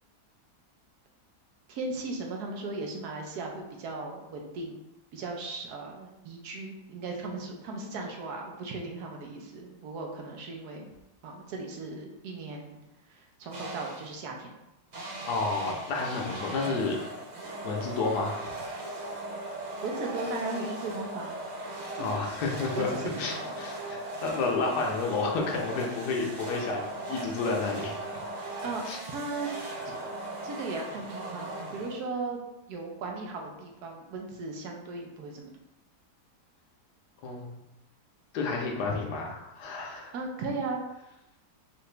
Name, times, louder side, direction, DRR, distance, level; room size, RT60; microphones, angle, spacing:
voice 1, 1.7-4.7 5.1-10.9 11.2-12.8 13.1-14.6 19.8-21.4 22.0-22.2 22.7-23.5 28.6-29.5 30.4-32.4 32.7-35.5 40.1-40.8, right 3 dB, 75° right, 1 dB, 1.3 m, -37 dB
sound 1, 13.5-14.2 14.9-32.3, right 2 dB, 50° right, 0.5 m, -38 dB
voice 2, 15.3-17.0 17.6-18.4 22.0-22.9 23.2-26.8 27.1-28.0 28.8-29.0 37.2-37.6 38.3-40.1, left 4 dB, 80° left, 0 dB, 1.4 m, -30 dB
4.6 x 2.5 x 3.3 m, 0.90 s
omnidirectional pair, 1.7 m